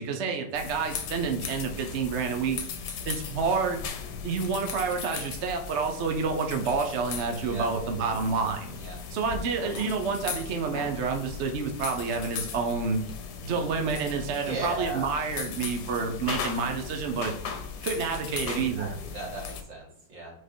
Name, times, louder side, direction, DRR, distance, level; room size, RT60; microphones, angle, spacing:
voice 1, 0.0-3.8 4.2-8.7 9.1-13.0 13.4-17.3 17.8-18.9, right 5 dB, 55° right, 4 dB, 0.8 m, -29 dB
sound 1, 0.5-19.6, left 6 dB, 65° left, 1.3 m, -38 dB
voice 2, 14.3-15.1 18.4-20.3, right 2 dB, 75° right, -4 dB, 3.3 m, -37 dB
4.8 x 4.6 x 4.5 m, 0.67 s
omnidirectional pair, 2.0 m